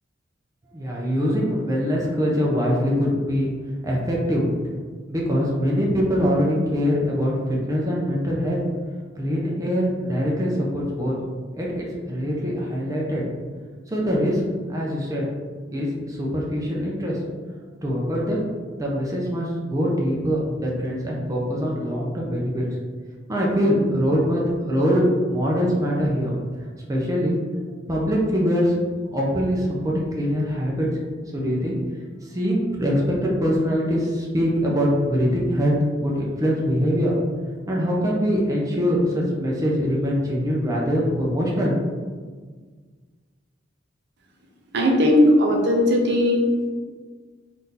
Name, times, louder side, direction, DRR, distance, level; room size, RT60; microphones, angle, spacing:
voice 1, 0.7-3.5 3.8-4.5 5.1-8.6 9.2-11.1 11.5-13.2 13.9-14.4 14.7-15.2 15.7-17.2 17.8-18.4 18.8-22.7 23.3-26.3 26.9-27.4 27.9-28.7 29.1-30.9 31.3-31.8 32.3-35.7 36.0-37.2 37.7-41.7, equal, 20° right, -4 dB, 0.5 m, -23 dB
voice 2, 44.7-46.5, left 1 dB, 65° right, -1 dB, 0.6 m, -18 dB
2.8 x 2.5 x 3.7 m, 1.5 s
head